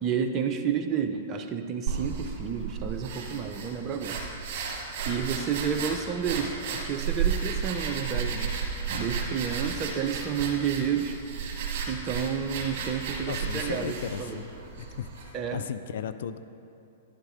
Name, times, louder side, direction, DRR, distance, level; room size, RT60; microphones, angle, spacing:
voice 1, 0.0-4.2 5.0-8.5 9.0-11.2 11.9-14.4 15.3-15.6, right 7 dB, 30° right, 6 dB, 0.6 m, -30 dB
sound 1, 1.9-15.3, right 6 dB, 45° right, 1.9 m, -33 dB
voice 2, 13.3-14.5 14.8-16.4, left 8 dB, 60° left, 11 dB, 0.3 m, -36 dB
11.5 x 10.5 x 2.7 m, 2.7 s
figure-of-eight pair, 105°, 0 cm